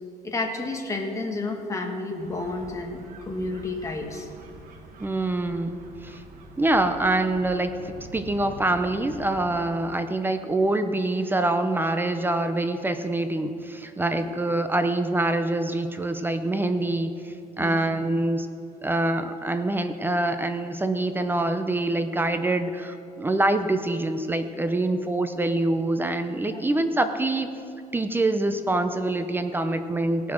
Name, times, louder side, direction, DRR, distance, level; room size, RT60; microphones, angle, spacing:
voice 1, 0.2-4.3 14.1-14.3 17.6-17.8 26.5-26.6, left 2 dB, 20° left, 2 dB, 1.5 m, -31 dB
sound 1, 2.2-9.5, right 2 dB, 65° right, 1.4 m, -45 dB
voice 2, 5.0-6.2 6.6-18.5 18.8-27.5 27.9-30.3, right 2 dB, 15° right, 8 dB, 0.5 m, -25 dB
17.5 x 5.9 x 6.2 m, 2.6 s
cardioid pair, 135°, 15 cm